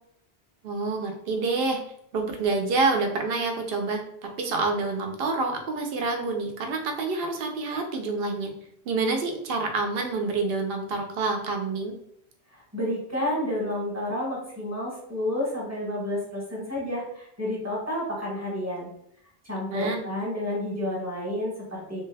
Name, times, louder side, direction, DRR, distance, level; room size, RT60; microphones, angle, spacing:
voice 1, 0.6-1.8 2.1-4.0 4.4-8.5 8.9-11.9 19.7-20.1, right 3 dB, 65° right, 4 dB, 0.8 m, -27 dB
voice 2, 12.5-18.9 19.4-22.0, left 1 dB, 15° right, -5 dB, 1.0 m, -30 dB
3.1 x 2.2 x 3.2 m, 0.72 s
omnidirectional pair, 1.1 m